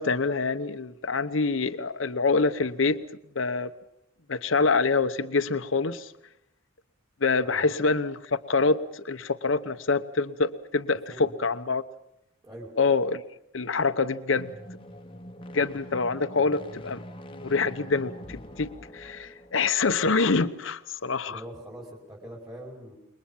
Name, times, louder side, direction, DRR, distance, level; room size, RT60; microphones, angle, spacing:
voice 1, 0.0-3.0 3.3-3.7 4.3-6.1 7.2-11.8 12.8-13.2 13.5-14.5 15.5-17.0 17.3-21.4, left 4 dB, 80° left, 1.0 m, -26 dB
sound 1, 14.3-19.9, equal, 25° left, 1.1 m, -44 dB
voice 2, 21.3-23.0, right 1 dB, 20° right, 5.2 m, -43 dB
27.5 x 22.5 x 7.3 m
head